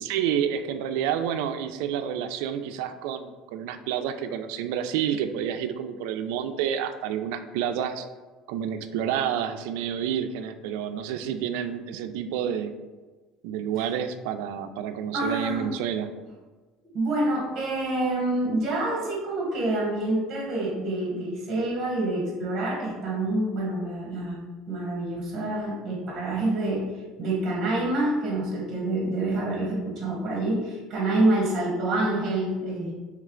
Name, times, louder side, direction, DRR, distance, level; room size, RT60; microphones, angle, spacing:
voice 1, 0.0-8.1 8.5-12.7 13.4-16.1, right 9 dB, 70° right, 9 dB, 0.3 m, -29 dB
voice 2, 15.1-15.7 16.9-24.4 24.7-26.9 27.2-32.9, right 2 dB, 25° right, -3 dB, 1.0 m, -27 dB
3.2 x 3.1 x 3.7 m, 1.3 s
cardioid pair, 170°, 0 cm